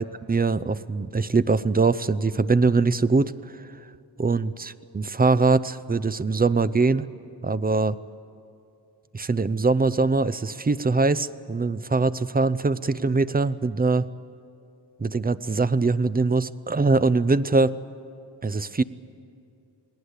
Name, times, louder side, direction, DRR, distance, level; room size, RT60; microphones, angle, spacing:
voice 1, 0.0-3.3 4.2-7.1 7.4-8.0 9.1-14.1 15.0-17.8 18.4-18.8, right 3 dB, 20° right, 15 dB, 0.6 m, -22 dB
29.0 x 20.5 x 8.2 m, 2.7 s
wide cardioid pair, 105°, 45 cm